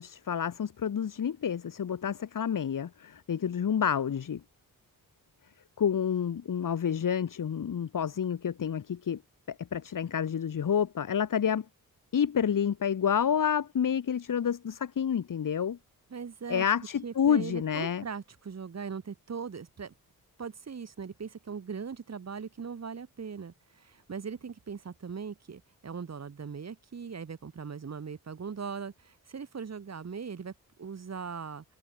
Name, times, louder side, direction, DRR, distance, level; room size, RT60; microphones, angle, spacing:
voice 1, 0.0-4.4 5.8-9.2 9.5-11.7 12.1-15.8 16.5-18.0, left 8 dB, 65° left, 3.6 m, -29 dB
voice 2, 16.1-16.6 17.0-19.9 20.4-30.5 30.8-31.6, right 6 dB, 45° right, 7.0 m, -40 dB
wide cardioid pair, 140°, 35 cm